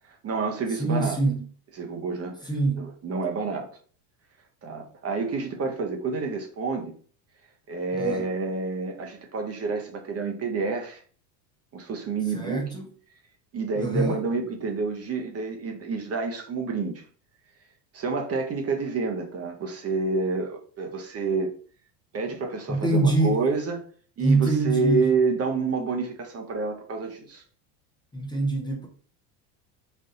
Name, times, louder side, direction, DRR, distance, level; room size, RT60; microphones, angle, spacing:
voice 1, 0.2-1.2 1.8-2.4 2.8-3.7 4.6-6.9 7.7-11.0 11.7-12.6 13.5-17.0 17.9-21.5 22.1-23.8 24.2-27.4, right 4 dB, 30° right, 0.9 m, -28 dB
voice 2, 0.8-1.4 2.4-2.9 7.9-8.3 12.3-12.9 13.8-14.2 22.7-23.4 24.2-25.1 28.1-28.9, right 3 dB, 10° left, 0.9 m, -24 dB
4.1 x 2.6 x 3.8 m
supercardioid pair, 100°, 48 cm